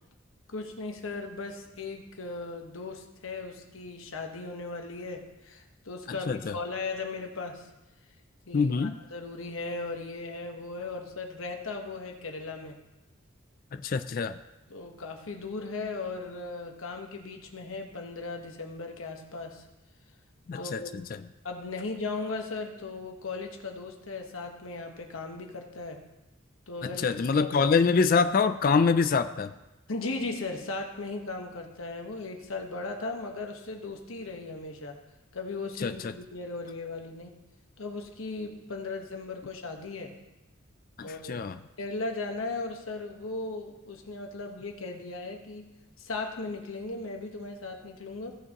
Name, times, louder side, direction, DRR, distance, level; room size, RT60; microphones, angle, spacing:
voice 1, 0.5-7.7 8.5-12.8 14.7-19.6 20.5-20.9 21.4-26.0 26.7-27.7 29.9-35.0 35.3-37.4 37.8-40.1 41.0-41.4 41.8-45.7 46.0-48.4, left 3 dB, 80° left, 3 dB, 1.2 m, -37 dB
voice 2, 8.5-9.0 13.8-14.3 20.5-21.0 27.0-29.5 35.8-35.9 41.0-41.6, left 5 dB, 45° left, 10 dB, 0.3 m, -25 dB
16.0 x 6.9 x 3.0 m, 1.0 s
head